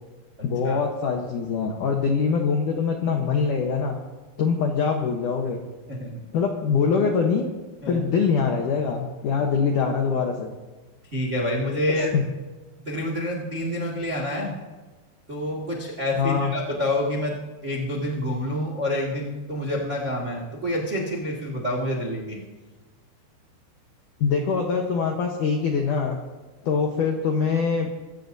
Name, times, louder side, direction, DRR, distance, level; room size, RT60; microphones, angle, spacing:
voice 1, 0.4-4.0 4.4-5.6 6.3-7.5 7.9-10.5 12.0-12.2 16.2-16.5 24.2-26.2 26.6-27.9, left 5 dB, 80° left, 2 dB, 1.8 m, -23 dB
voice 2, 5.9-6.2 7.8-8.0 11.1-12.1 12.8-14.5 15.3-22.4, left 1 dB, 85° right, -2 dB, 0.6 m, -28 dB
24.5 x 15.0 x 2.7 m, 1.3 s
omnidirectional pair, 5.3 m